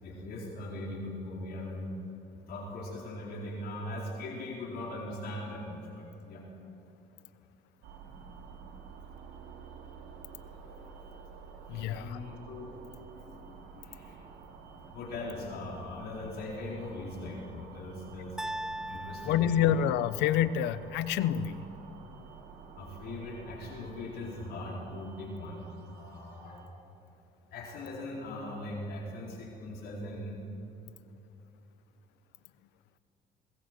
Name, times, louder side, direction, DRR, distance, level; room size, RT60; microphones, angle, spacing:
voice 1, 0.0-1.9 2.3-6.4 10.4-11.2 11.7-13.3 13.7-14.2 14.9-18.4 18.9-19.7 22.8-26.6 27.5-30.4, left 1 dB, 65° left, -2 dB, 4.1 m, -40 dB
sound 1, 7.8-26.7, right 5 dB, 90° right, 2.7 m, -50 dB
voice 2, 11.7-12.2 19.2-21.6, left 10 dB, 90° left, 15 dB, 0.9 m, -27 dB
sound 2, 18.4-20.5, right 1 dB, 5° right, 0.4 m, -40 dB
21.5 x 18.5 x 7.8 m, 2.9 s
cardioid pair, 110°, 17 cm